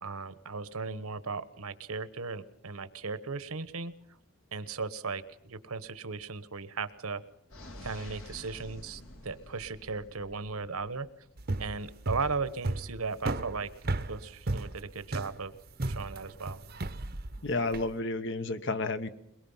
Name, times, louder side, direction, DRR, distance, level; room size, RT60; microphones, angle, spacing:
voice 1, 0.0-3.9 4.5-7.2 7.8-11.1 11.6-13.7 14.1-15.5 15.8-16.6, right 4 dB, 80° right, 14 dB, 1.2 m, -36 dB
sound 1, 7.5-11.3, left 1 dB, 75° left, 3.2 m, -49 dB
sound 2, 11.4-17.9, right 2 dB, 45° right, 0.8 m, -34 dB
voice 2, 17.4-19.1, left 2 dB, 55° left, 11 dB, 1.2 m, -31 dB
22.5 x 22.0 x 5.7 m, 0.77 s
head